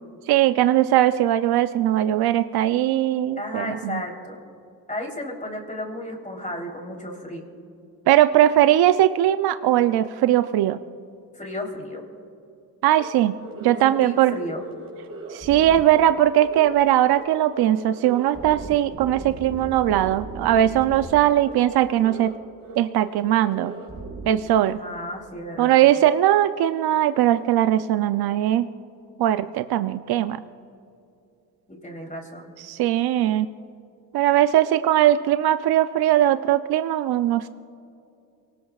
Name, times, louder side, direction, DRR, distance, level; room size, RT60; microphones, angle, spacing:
voice 1, 0.3-4.0 8.1-10.8 12.8-13.3 13.6-14.3 15.3-22.3 22.8-23.7 24.3-24.8 25.6-28.7 29.2-30.4 32.6-33.5 34.1-37.5, right 12 dB, 75° right, 11 dB, 0.6 m, -20 dB
voice 2, 3.4-4.4 4.9-7.5 11.3-12.0 13.7-14.6 24.2-25.7 31.7-32.5, left 1 dB, 20° left, 1 dB, 3.4 m, -34 dB
sound 1, 12.9-13.0 13.4-13.9 14.1-14.3 14.6-16.0 16.3-16.8 17.1-17.2 17.5-21.1 21.4-21.5 21.8-22.4 22.6-22.8 23.0-24.3, right 3 dB, 40° right, 4.6 m, -38 dB
28.5 x 18.5 x 2.4 m, 2.6 s
cardioid pair, 75°, 38 cm